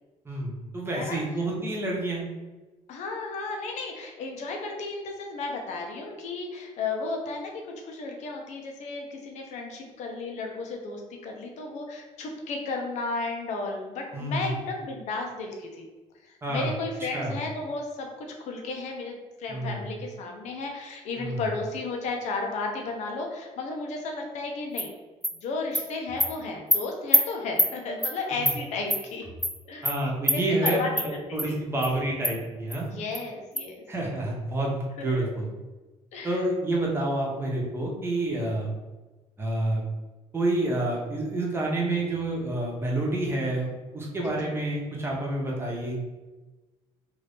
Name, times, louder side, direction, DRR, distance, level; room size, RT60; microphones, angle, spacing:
voice 1, 0.2-2.2 14.1-14.5 16.4-16.7 17.1-17.4 19.5-19.8 21.2-21.5 28.3-28.6 29.8-32.9 33.9-35.5 36.2-38.7 39.4-39.8 40.3-43.7 43.9-46.0, right 1 dB, 20° right, -2 dB, 0.9 m, -28 dB
voice 2, 2.9-7.5 7.8-15.9 16.2-24.9 25.3-29.2 29.7-29.9 30.3-30.9 31.3-31.6 32.9-33.8 35.0-35.1 36.1-36.4 44.2-44.3, left 3 dB, 65° left, 2 dB, 0.7 m, -34 dB
Animal, 24.8-24.9 25.2-25.3 25.7-25.8 26.2-26.3 26.7-26.8 27.1-27.2 27.6-27.7 28.0-28.1 28.4-28.6 28.9-29.0 29.4-29.5 29.8-29.9 30.3-30.4 30.6-31.1 31.4-31.5 31.8-31.9 32.2-32.3 32.7-32.8 33.1-33.2 33.6-33.7, equal, ahead, 0.3 m, -23 dB
2.9 x 2.7 x 3.4 m, 1.2 s
cardioid pair, 120°, 13 cm